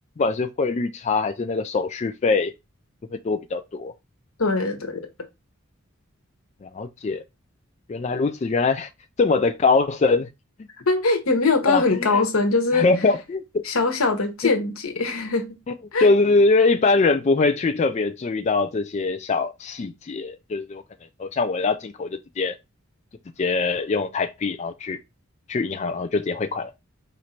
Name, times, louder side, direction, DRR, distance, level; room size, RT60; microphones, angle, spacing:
voice 1, 0.2-2.5 3.2-3.9 6.6-7.2 7.9-8.9 9.2-10.3 11.7-12.2 12.7-13.7 15.7-15.8 16.0-20.8 21.2-22.1 22.4-22.5 23.4-25.0 25.5-26.7, left 3 dB, 35° left, 0.3 m, -22 dB
voice 2, 4.4-5.1 10.9-12.9 13.6-15.5 15.9-16.1, left 3 dB, 90° left, 1.1 m, -22 dB
4.4 x 2.6 x 4.3 m
head